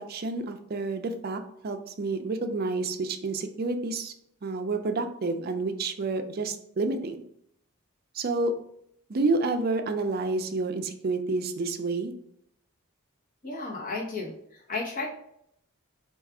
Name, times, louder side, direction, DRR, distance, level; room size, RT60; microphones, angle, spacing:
voice 1, 0.0-4.1 4.4-7.2 8.1-8.5 9.1-12.1, right 3 dB, 45° right, 7 dB, 0.4 m, -29 dB
voice 2, 13.4-15.1, left 3 dB, 40° left, -4 dB, 0.9 m, -33 dB
4.5 x 2.4 x 4.7 m, 0.72 s
head